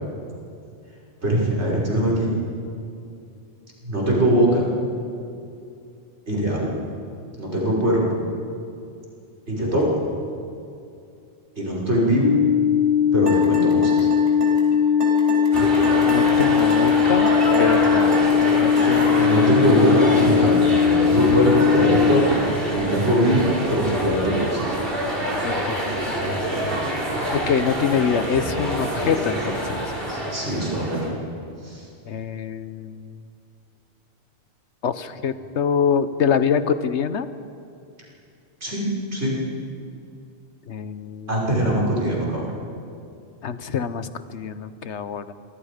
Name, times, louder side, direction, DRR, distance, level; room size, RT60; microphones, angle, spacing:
voice 1, 1.2-2.3 3.8-4.7 6.3-6.8 7.4-8.2 9.5-10.0 11.6-12.3 13.1-14.1 19.2-22.4 22.7-24.7 30.1-31.2 31.6-31.8 38.6-39.4 41.3-42.5, right 1 dB, 75° right, -5 dB, 6.1 m, -22 dB
voice 2, 7.8-8.1 16.1-17.3 17.6-19.3 25.4-26.7 27.2-29.8 32.1-33.2 34.8-37.3 40.7-41.4 43.4-45.3, left 7 dB, 80° left, 12 dB, 1.3 m, -25 dB
sound 1, 12.2-22.2, left 7 dB, 50° left, 1.2 m, -19 dB
sound 2, 13.3-19.3, right 2 dB, 25° right, 4.1 m, -30 dB
sound 3, 15.5-31.1, right 1 dB, 55° right, 4.2 m, -26 dB
26.5 x 24.5 x 5.2 m, 2.5 s
omnidirectional pair, 1.2 m